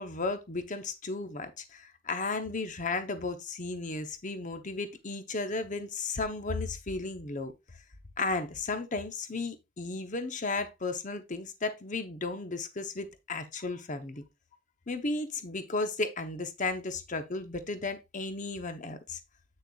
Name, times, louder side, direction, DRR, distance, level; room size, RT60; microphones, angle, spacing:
voice 1, 0.0-7.5 8.2-14.2 14.9-19.2, left 3 dB, 35° left, 0.9 m, -34 dB
8.5 x 6.6 x 2.4 m
head